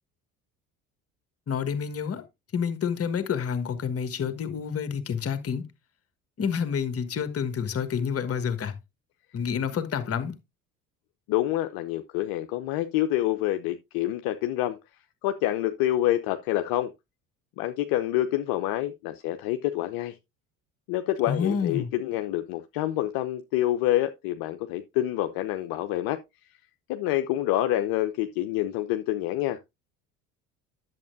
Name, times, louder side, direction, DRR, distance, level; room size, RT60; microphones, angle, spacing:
voice 1, 1.5-2.2 2.5-5.7 6.4-8.8 9.3-10.3 21.3-21.9, left 7 dB, 35° left, 1.5 m, -28 dB
voice 2, 11.3-14.8 15.2-16.9 17.6-20.2 20.9-26.2 26.9-29.6, left 14 dB, 55° left, 0.8 m, -27 dB
10.5 x 7.5 x 2.6 m
figure-of-eight pair, 60°, 43 cm